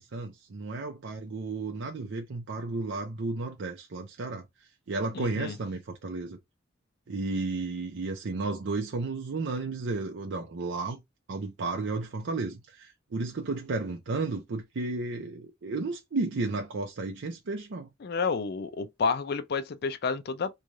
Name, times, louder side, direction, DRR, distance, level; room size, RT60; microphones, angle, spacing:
voice 1, 0.0-4.4 4.9-6.4 7.1-11.0 11.3-17.9, right 3 dB, 65° right, 0.5 m, -33 dB
voice 2, 5.1-5.6 18.0-20.5, left 5 dB, 55° left, 0.4 m, -30 dB
3.1 x 2.3 x 2.6 m
head